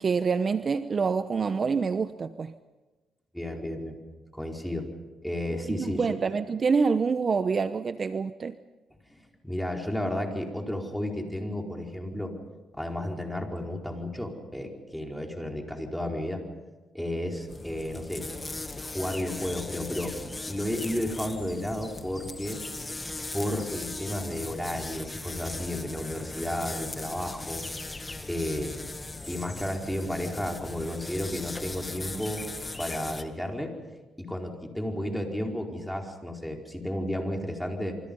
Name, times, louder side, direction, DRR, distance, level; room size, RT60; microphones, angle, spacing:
voice 1, 0.0-2.5 5.7-8.6, right 5 dB, 40° right, 11 dB, 0.8 m, -26 dB
voice 2, 3.3-4.0 4.3-4.9 5.2-6.1 9.1-12.3 12.7-16.4 16.9-18.3 18.8-20.2 20.5-22.6 23.3-27.6 27.9-28.8 29.3-32.5 32.8-33.7 34.2-38.0, left 1 dB, 5° left, 1 dB, 4.8 m, -32 dB
sound 1, 17.5-33.2, left 2 dB, 20° left, 1.7 m, -38 dB
28.0 x 24.5 x 5.6 m, 1.2 s
cardioid pair, 90°, 0 cm